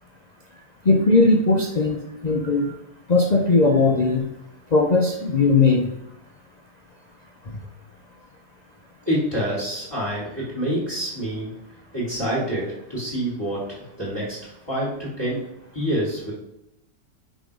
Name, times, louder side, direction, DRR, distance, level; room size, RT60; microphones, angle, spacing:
voice 1, 0.9-2.7 3.1-4.3 4.7-5.9, left 3 dB, 75° left, 0 dB, 0.3 m, -18 dB
voice 2, 9.0-11.5 11.9-15.5 15.7-16.3, equal, 15° left, -7 dB, 3.4 m, -27 dB
10.0 x 3.7 x 5.1 m, 0.84 s
omnidirectional pair, 1.9 m